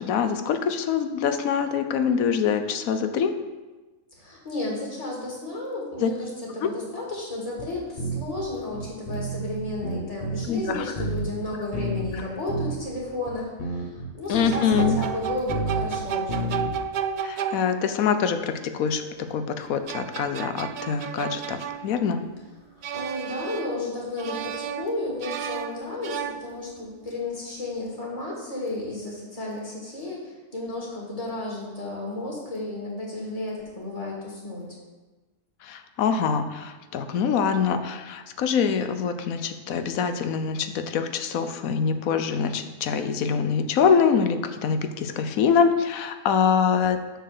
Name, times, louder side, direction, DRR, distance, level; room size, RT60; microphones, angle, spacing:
voice 1, 0.0-3.3 6.0-6.1 6.6-6.7 10.5-10.9 14.3-15.0 17.2-22.2 35.6-47.0, left 6 dB, 90° left, 9 dB, 1.2 m, -24 dB
voice 2, 4.1-16.6 22.8-34.7, left 2 dB, 25° left, -4 dB, 2.3 m, -33 dB
sound 1, 7.6-7.7 8.0-8.4 8.7-10.7 11.0-11.4 11.7-12.2 12.5-12.8 13.3-13.4 13.6-16.0 16.3-16.8, right 2 dB, 45° left, 1.2 m, -30 dB
sound 2, 14.4-18.1 19.6-22.3 22.8-23.9 24.2-26.9, right 7 dB, 85° right, 0.4 m, -33 dB
6.6 x 6.5 x 6.7 m, 1.2 s
omnidirectional pair, 1.4 m